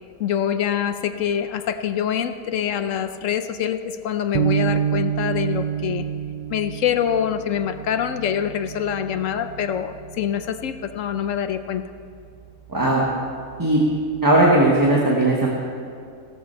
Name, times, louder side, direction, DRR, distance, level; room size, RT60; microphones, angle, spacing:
voice 1, 0.2-6.1 6.5-11.8, left 9 dB, 70° left, 10 dB, 0.9 m, -25 dB
sound 1, 4.3-10.8, right 9 dB, 50° right, 0.6 m, -28 dB
voice 2, 12.7-13.0 13.6-13.8 14.2-15.5, right 1 dB, 15° right, -3 dB, 1.2 m, -17 dB
16.0 x 13.5 x 4.4 m, 2.4 s
omnidirectional pair, 1.5 m